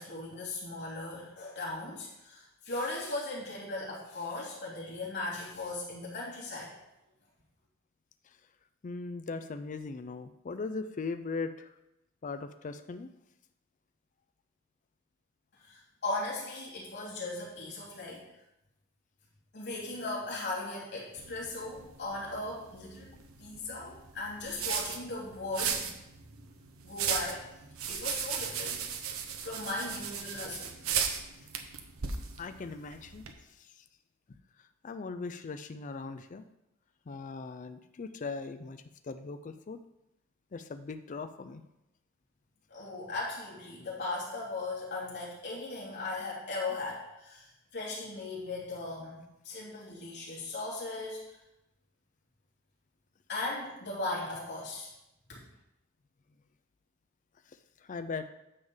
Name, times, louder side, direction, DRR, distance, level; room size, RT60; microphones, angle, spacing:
voice 1, 0.0-6.7 15.7-18.2 19.5-23.1 23.4-25.9 26.8-27.5 27.9-28.8 29.4-30.8 42.7-47.5 47.7-51.2 53.3-54.9 55.3-55.4, left 2 dB, 55° left, -5 dB, 3.0 m, -38 dB
voice 2, 8.8-11.7 12.2-13.1 32.4-33.2 33.6-33.8 34.8-36.4 37.1-39.8 40.5-41.6 57.9-58.3, left 4 dB, 35° left, 9 dB, 0.4 m, -39 dB
sound 1, 21.2-33.3, right 7 dB, 80° right, 0.9 m, -37 dB
9.6 x 3.7 x 7.1 m, 0.88 s
head